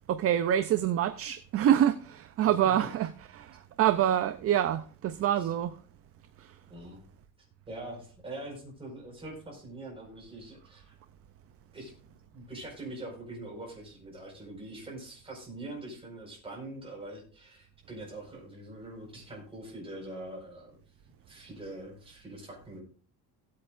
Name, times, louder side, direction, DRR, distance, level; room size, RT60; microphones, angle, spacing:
voice 1, 0.1-5.8 6.4-6.6, right 10 dB, 40° right, 0.5 m, -26 dB
voice 2, 2.4-2.7 5.4-5.5 6.7-7.0 7.7-10.9 11.7-20.8 21.3-22.8, right 1 dB, 15° right, 4.8 m, -43 dB
18.0 x 8.3 x 2.5 m
cardioid pair, 165°, 37 cm